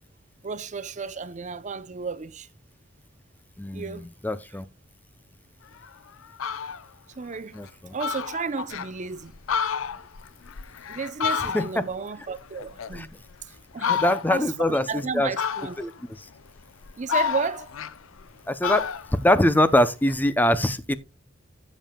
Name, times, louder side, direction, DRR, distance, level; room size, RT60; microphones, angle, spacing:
voice 1, 0.4-2.5 3.7-4.1 7.2-7.6 7.9-9.3 10.9-13.1 13.4-14.0 14.3-15.8 17.0-17.7, right 5 dB, 35° right, 0.6 m, -33 dB
voice 2, 3.6-4.6 7.5-8.0 11.5-11.8 12.9-13.1 13.9-15.3 15.8-15.9 18.5-20.9, left 1 dB, 10° left, 0.5 m, -23 dB
Fowl, 5.8-5.9 6.2-6.8 7.3-7.4 7.7-7.8 8.0-8.9 9.3-12.0 12.3-13.3 13.8-14.5 15.4-16.0 16.6-18.3 18.6-20.2, left 7 dB, 75° left, 0.6 m, -30 dB
15.0 x 7.3 x 2.2 m
head